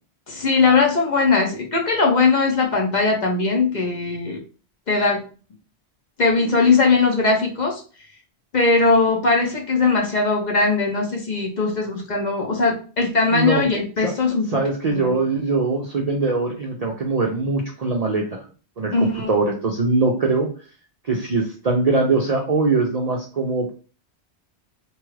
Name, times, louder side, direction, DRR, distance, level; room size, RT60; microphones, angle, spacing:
voice 1, 0.3-4.4 4.9-5.3 6.2-7.8 8.5-14.5 14.8-15.2 18.9-19.3, left 3 dB, 50° left, 0 dB, 0.6 m, -20 dB
voice 2, 13.3-13.6 14.0-14.1 14.5-18.4 18.8-20.5 21.1-23.7, right 3 dB, 55° right, 0 dB, 0.4 m, -22 dB
2.9 x 2.3 x 3.1 m, 0.37 s
omnidirectional pair, 1.1 m